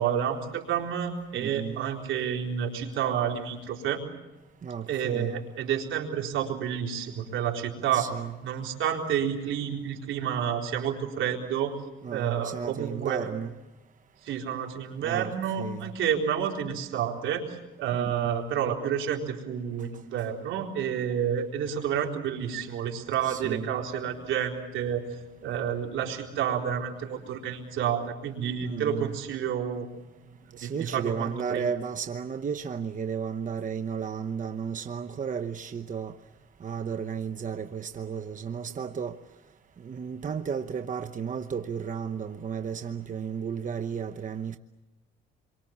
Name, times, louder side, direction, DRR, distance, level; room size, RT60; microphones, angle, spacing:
voice 1, 0.0-4.0 4.9-8.1 8.4-11.7 12.1-13.3 14.2-25.0 25.4-29.9 30.6-31.6, right 8 dB, 80° right, 4.1 m, -29 dB
voice 2, 1.3-1.8 4.6-5.4 7.9-8.4 12.0-13.5 15.0-15.9 17.9-18.4 23.2-23.8 28.6-29.2 30.6-36.1 36.6-39.2 39.8-44.6, right 7 dB, 40° right, 1.0 m, -33 dB
27.5 x 24.0 x 7.3 m
cardioid pair, 90°, 20 cm